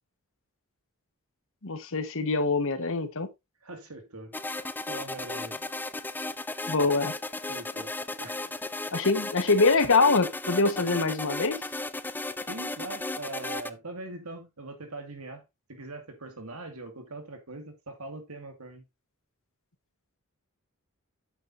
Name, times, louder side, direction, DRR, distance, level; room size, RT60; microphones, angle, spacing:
voice 1, 1.6-3.3 6.7-7.1 8.9-11.6, left 3 dB, 60° left, 1.4 m, -24 dB
voice 2, 3.6-5.7 7.5-8.4 12.5-15.4 15.7-18.8, right 2 dB, 75° right, 2.3 m, -42 dB
sound 1, 4.3-13.7, left 2 dB, 10° left, 0.4 m, -35 dB
8.8 x 8.7 x 2.7 m
head